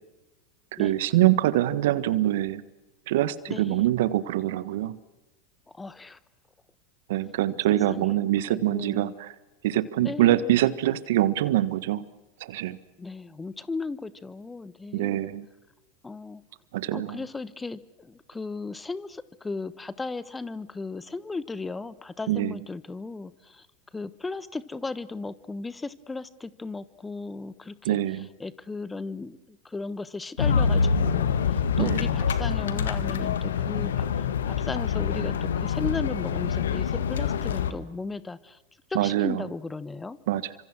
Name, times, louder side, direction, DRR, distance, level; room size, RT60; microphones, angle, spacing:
voice 1, 0.7-2.6 3.1-5.0 7.1-9.3 9.6-12.0 12.4-12.8 14.9-15.4 16.7-17.2 22.3-22.5 27.8-28.3 31.8-32.1 38.9-39.4 40.3-40.4, right 14 dB, 65° right, 16 dB, 1.4 m, -24 dB
voice 2, 3.5-3.8 5.7-6.2 7.7-8.1 8.5-9.1 10.0-10.5 13.0-15.3 16.0-16.4 16.9-23.7 23.9-38.6 38.9-40.2, left 3 dB, 15° left, 16 dB, 1.2 m, -36 dB
sound 1, 30.4-37.7, left 6 dB, 75° left, 1.7 m, -26 dB
29.5 x 26.0 x 6.2 m, 0.99 s
hypercardioid pair, 90°, 0 cm